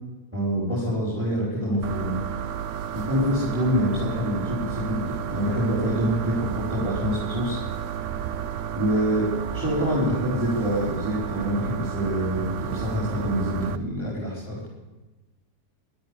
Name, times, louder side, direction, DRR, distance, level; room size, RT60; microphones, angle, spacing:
voice 1, 0.3-2.1 2.9-7.6 8.7-9.2 9.5-14.7, equal, 5° right, -6 dB, 5.0 m, -26 dB
sound 1, 1.8-13.8, right 9 dB, 60° right, 0.9 m, -32 dB
13.5 x 12.5 x 8.2 m, 1.1 s
omnidirectional pair, 1.8 m